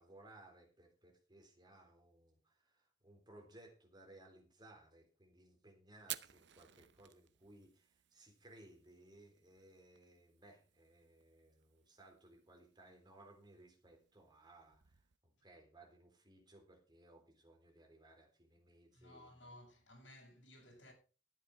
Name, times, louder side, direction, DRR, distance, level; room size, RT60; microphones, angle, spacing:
voice 1, 0.0-19.6, right 1 dB, 25° right, 3.6 m, -62 dB
Fire, 6.0-15.2, right 14 dB, 65° right, 0.7 m, -56 dB
voice 2, 18.9-20.9, left 1 dB, 75° left, 7.2 m, -58 dB
12.5 x 10.0 x 4.8 m
head